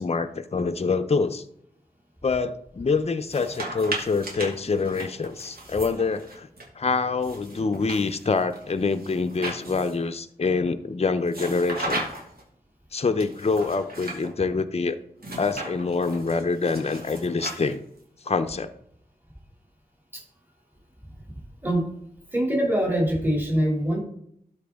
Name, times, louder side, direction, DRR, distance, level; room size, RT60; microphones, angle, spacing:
voice 1, 0.0-1.4 2.2-6.5 6.8-12.0 12.9-15.0 15.4-17.8 18.2-18.7, left 4 dB, 40° left, 9 dB, 0.6 m, -25 dB
sound 1, 3.2-6.6 7.2-10.1 11.3-12.4 13.2-14.3 15.2-18.0, right 1 dB, 70° right, 2.1 m, -36 dB
voice 2, 22.3-24.0, right 1 dB, 15° right, -1 dB, 2.6 m, -23 dB
12.5 x 4.7 x 3.5 m, 0.70 s
wide cardioid pair, 65°, 16 cm